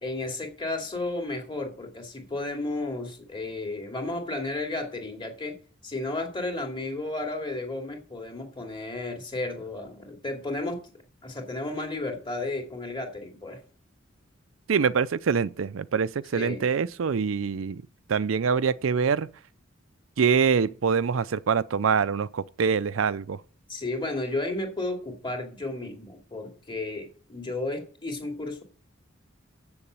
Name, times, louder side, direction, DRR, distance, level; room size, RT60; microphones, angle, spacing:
voice 1, 0.0-5.6 5.8-10.9 11.2-13.6 16.3-16.7 23.7-28.6, left 2 dB, 25° left, 2.6 m, -33 dB
voice 2, 14.7-17.8 18.1-19.3 20.2-23.4, right 6 dB, 90° right, 0.5 m, -25 dB
7.8 x 7.0 x 8.0 m
head